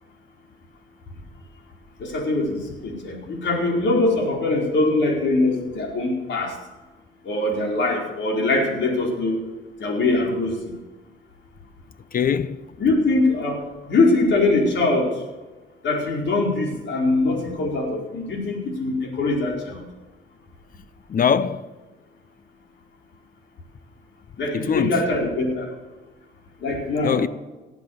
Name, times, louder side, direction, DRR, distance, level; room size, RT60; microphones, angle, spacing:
voice 1, 2.0-6.5 7.2-9.4 9.8-10.6 12.8-13.6 13.9-15.2 15.8-19.8 24.4-25.7 26.6-27.2, left 2 dB, 65° left, 4.5 m, -22 dB
voice 2, 12.1-12.6 21.1-21.7 24.5-25.0 27.0-27.3, left 7 dB, 45° left, 0.8 m, -22 dB
18.5 x 8.3 x 7.1 m
cardioid pair, 90°, 20 cm